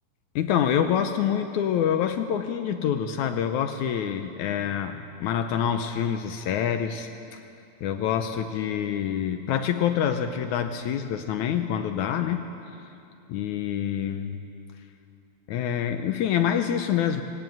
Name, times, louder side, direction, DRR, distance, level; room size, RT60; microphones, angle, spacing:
voice 1, 0.4-7.1 7.8-12.5 13.3-14.4 15.5-17.2, left 9 dB, 75° left, 7 dB, 2.1 m, -26 dB
18.5 x 18.0 x 9.2 m, 2.6 s
omnidirectional pair, 3.6 m